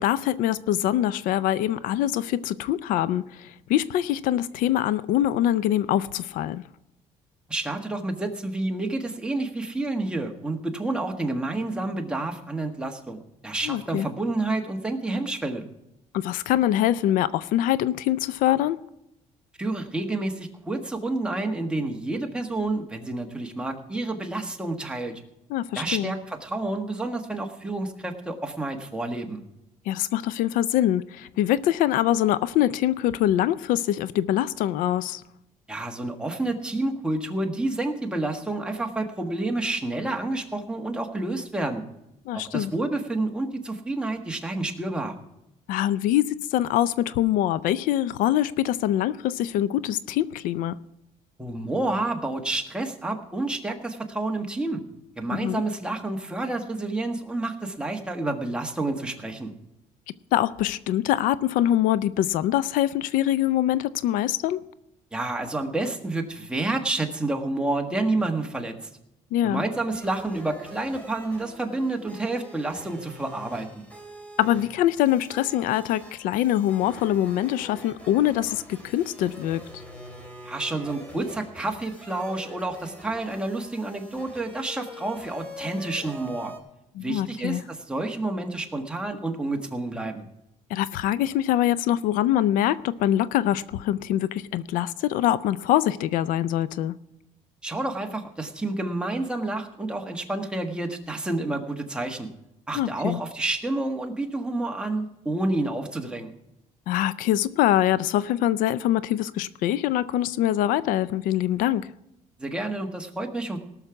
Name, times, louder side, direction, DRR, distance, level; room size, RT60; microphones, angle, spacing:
voice 1, 0.0-6.6 13.6-14.1 16.1-18.8 25.5-26.1 29.9-35.2 42.3-42.7 45.7-50.8 55.3-55.6 60.3-64.6 69.3-69.6 74.4-79.6 87.0-87.6 90.7-96.9 102.7-103.2 106.9-111.9, left 12 dB, 85° left, 17 dB, 0.5 m, -24 dB
voice 2, 7.5-15.6 19.6-25.2 25.7-29.4 35.7-41.8 42.3-45.2 51.4-54.8 55.2-59.5 65.1-68.9 69.4-73.8 80.4-86.5 87.0-90.3 97.6-102.3 102.7-106.3 112.4-113.6, right 2 dB, 5° right, 3 dB, 1.5 m, -29 dB
sound 1, 69.9-86.6, left 1 dB, 10° left, 3.1 m, -44 dB
18.0 x 6.6 x 5.9 m, 0.87 s
cardioid pair, 120°, 14 cm